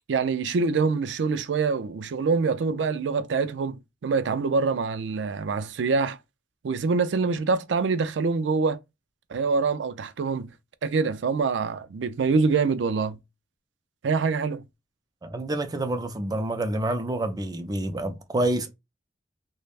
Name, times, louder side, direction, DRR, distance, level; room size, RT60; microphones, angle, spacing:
voice 1, 0.1-6.2 6.6-8.8 9.3-10.5 10.8-13.2 14.0-14.6, right 4 dB, 90° right, 0.4 m, -25 dB
voice 2, 15.2-18.7, right 1 dB, 20° right, 0.4 m, -28 dB
3.3 x 2.1 x 2.4 m
head